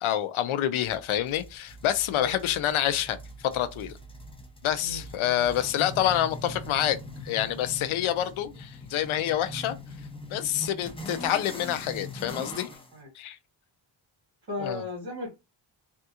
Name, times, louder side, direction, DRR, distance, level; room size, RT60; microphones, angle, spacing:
voice 1, 0.0-3.2 3.4-4.0 4.6-7.0 7.2-9.8 10.3-12.7 13.2-13.4 14.6-14.8, left 11 dB, 80° left, 0.6 m, -27 dB
sound 1, 0.8-12.9, left 1 dB, 10° left, 0.7 m, -42 dB
voice 2, 4.8-5.5 12.9-13.1 14.5-15.3, left 2 dB, 50° right, 2.1 m, -36 dB
3.5 x 2.4 x 2.8 m
wide cardioid pair, 135°, 48 cm